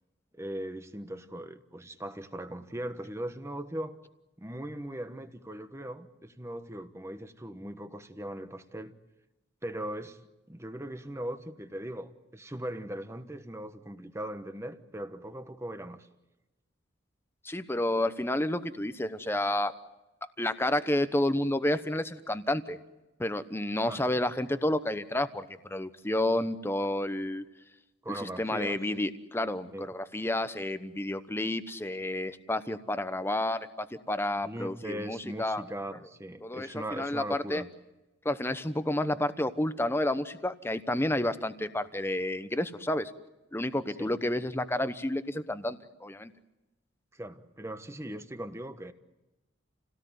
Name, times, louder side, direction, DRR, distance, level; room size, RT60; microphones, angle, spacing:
voice 1, 0.4-4.0 4.4-8.9 9.6-10.2 10.5-16.1 23.8-24.0 28.0-28.8 29.7-29.9 34.4-37.7 44.0-44.1 47.1-48.9, right 1 dB, 15° right, 9 dB, 1.1 m, -39 dB
voice 2, 17.4-19.7 20.4-22.8 23.2-27.4 28.1-35.6 36.4-37.6 38.2-43.1 43.5-46.3, left 1 dB, 10° left, 11 dB, 0.9 m, -30 dB
29.0 x 17.5 x 9.4 m, 1.0 s
head